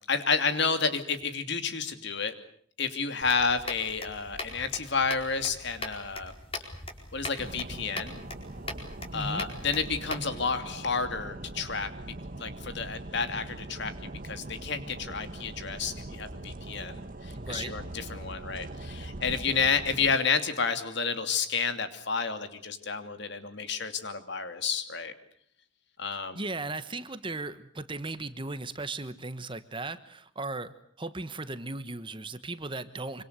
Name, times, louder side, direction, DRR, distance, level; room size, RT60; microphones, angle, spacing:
voice 1, 0.1-2.3 2.8-6.3 7.1-8.2 9.1-11.9 12.4-13.9 14.2-25.1 26.0-26.4, left 5 dB, 55° left, 9 dB, 2.7 m, -30 dB
sound 1, 3.2-10.3, left 2 dB, 25° left, 4.4 m, -41 dB
sound 2, 7.4-20.2, right 2 dB, 40° right, 1.1 m, -41 dB
voice 2, 17.3-17.7 26.1-33.2, right 2 dB, 25° right, 12 dB, 1.2 m, -37 dB
26.0 x 25.5 x 8.2 m, 0.63 s
head